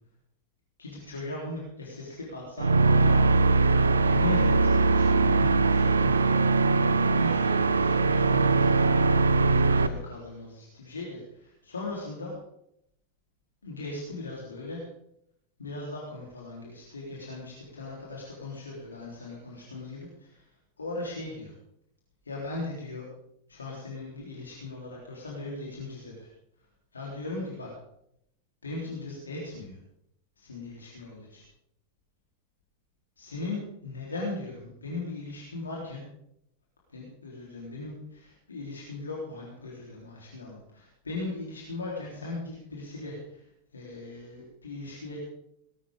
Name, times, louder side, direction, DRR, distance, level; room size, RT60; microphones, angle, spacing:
voice 1, 0.8-3.2 3.7-6.4 7.0-12.3 13.6-14.8 15.6-20.4 20.8-21.5 22.3-23.1 23.5-26.3 26.9-27.7 28.6-29.8 30.4-31.4 33.2-36.0 36.9-43.4 43.7-45.2, left 2 dB, 75° left, -4 dB, 3.7 m, -38 dB
sound 1, 2.6-9.9, right 3 dB, 75° right, 0.7 m, -21 dB
19.5 x 12.5 x 3.7 m, 0.75 s
figure-of-eight pair, 90°, 0 cm